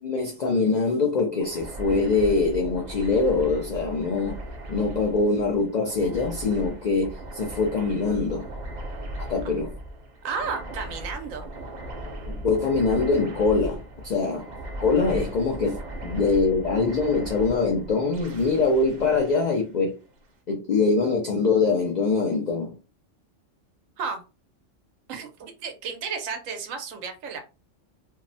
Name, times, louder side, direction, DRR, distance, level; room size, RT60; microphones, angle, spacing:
voice 1, 0.0-4.4 4.7-8.5 9.2-9.7 12.3-14.5 14.8-19.9 20.5-22.8, left 4 dB, 70° left, 0.4 m, -23 dB
sound 1, 1.4-20.2, right 1 dB, 50° right, 0.5 m, -38 dB
voice 2, 10.2-11.5 24.0-24.2 25.1-27.4, right 5 dB, 85° right, 1.0 m, -33 dB
2.7 x 2.0 x 2.6 m
omnidirectional pair, 1.3 m